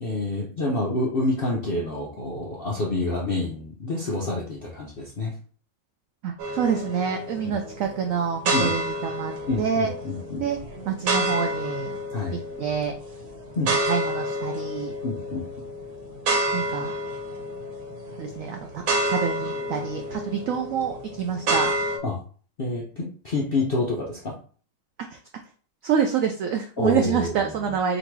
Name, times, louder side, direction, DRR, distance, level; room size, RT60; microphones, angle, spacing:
voice 1, 0.0-5.3 7.4-7.5 8.5-8.8 9.5-10.4 12.1-12.4 13.5-13.7 15.0-15.4 22.0-22.2 22.6-24.3 26.8-27.7, left 2 dB, 60° left, -2 dB, 0.6 m, -28 dB
voice 2, 6.2-9.9 10.4-10.6 10.9-11.9 12.6-12.9 13.9-15.0 16.5-17.0 18.2-18.8 19.1-21.7 25.1-25.2 25.8-28.0, right 7 dB, 85° right, 5 dB, 0.7 m, -27 dB
sound 1, 6.4-22.0, right 1 dB, 60° right, 1.4 m, -29 dB
3.9 x 2.7 x 4.6 m, 0.42 s
omnidirectional pair, 1.9 m